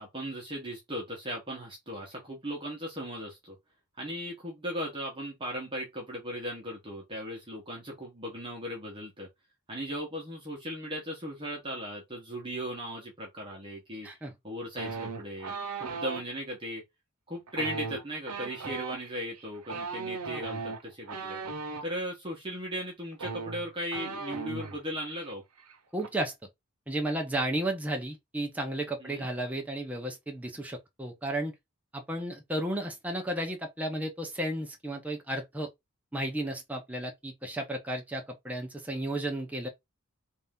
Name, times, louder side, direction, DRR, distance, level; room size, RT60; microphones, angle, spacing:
voice 1, 0.0-3.6 4.0-9.3 9.7-14.1 14.4-15.5 15.8-16.8 17.3-21.4 21.8-25.4 29.0-29.3, equal, 25° right, 1.1 m, -37 dB
sound 1, 14.8-16.2 17.5-21.8 22.8-22.9 23.1-24.8 25.1-25.3 25.6-26.1, right 4 dB, 85° right, 0.8 m, -37 dB
voice 2, 25.9-26.3 26.9-31.5 31.9-35.7 36.1-39.7, right 1 dB, 5° right, 0.7 m, -33 dB
3.4 x 2.7 x 3.6 m
head